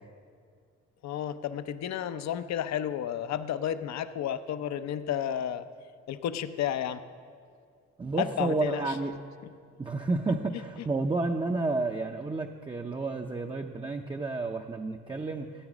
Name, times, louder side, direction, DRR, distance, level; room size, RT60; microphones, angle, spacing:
voice 1, 1.0-5.6 6.1-7.0 8.2-9.0, left 10 dB, 65° left, 11 dB, 0.6 m, -32 dB
voice 2, 8.0-9.1 9.8-15.5, right 3 dB, 15° right, 2 dB, 0.6 m, -30 dB
14.5 x 8.7 x 6.1 m, 2.1 s
cardioid pair, 90°, 30 cm